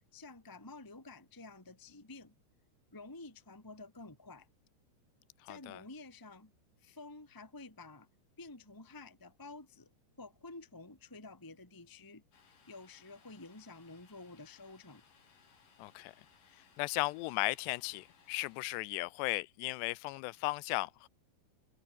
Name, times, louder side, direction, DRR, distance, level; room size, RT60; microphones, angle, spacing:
voice 1, 0.1-2.3 2.9-4.5 5.4-6.5 6.8-8.1 8.4-9.9 10.2-15.0, left 3 dB, 10° left, 1.5 m, -51 dB
voice 2, 5.5-5.8 15.8-16.1 16.8-21.1, left 22 dB, 80° left, 2.7 m, -36 dB
Domestic sounds home sounds, 12.3-18.6, left 6 dB, 50° left, 5.1 m, -65 dB
omnidirectional pair, 5.0 m